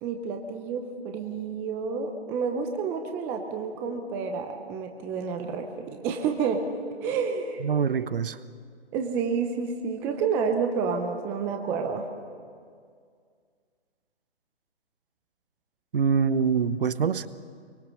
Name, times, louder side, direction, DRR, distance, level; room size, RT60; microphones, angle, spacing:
voice 1, 0.0-6.7 7.0-7.6 8.9-12.1, right 5 dB, 5° right, 4 dB, 0.6 m, -29 dB
voice 2, 7.6-8.4 15.9-17.3, right 6 dB, 55° right, 15 dB, 1.0 m, -24 dB
23.5 x 23.5 x 6.4 m, 2.1 s
figure-of-eight pair, 150°, 33 cm